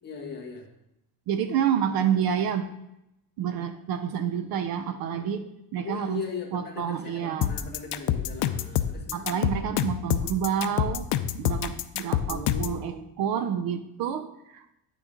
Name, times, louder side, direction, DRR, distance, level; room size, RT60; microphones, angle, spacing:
voice 1, 0.0-0.7 5.8-9.6 12.3-13.1, left 5 dB, 25° left, -1 dB, 1.3 m, -39 dB
voice 2, 1.3-2.7 3.4-5.5 5.7-6.2 6.5-7.5 9.1-11.1 11.3-14.6, right 8 dB, 60° right, 10 dB, 0.6 m, -28 dB
sound 1, 7.4-12.8, left 11 dB, 85° left, 0.6 m, -26 dB
9.3 x 6.2 x 3.8 m, 0.85 s
cardioid pair, 170°, 40 cm